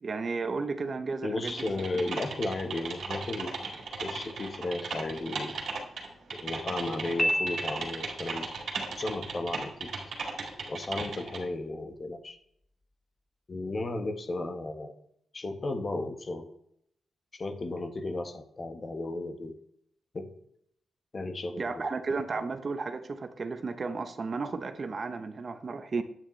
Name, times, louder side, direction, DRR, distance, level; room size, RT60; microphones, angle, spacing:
voice 1, 0.0-1.7 21.6-26.0, right 4 dB, 45° right, 0.8 m, -33 dB
voice 2, 1.2-3.7 4.0-5.5 6.3-8.5 9.0-9.9 10.7-12.4 13.5-14.9 15.3-16.5 17.3-19.6 20.1-20.3 21.1-21.9 22.4-22.5, left 2 dB, 40° left, 1.3 m, -34 dB
Typing, 1.5-11.4, right 4 dB, 70° right, 2.1 m, -37 dB
Piano, 7.2-8.3, equal, 10° left, 0.7 m, -29 dB
8.9 x 8.6 x 3.2 m
cardioid pair, 80°, 0 cm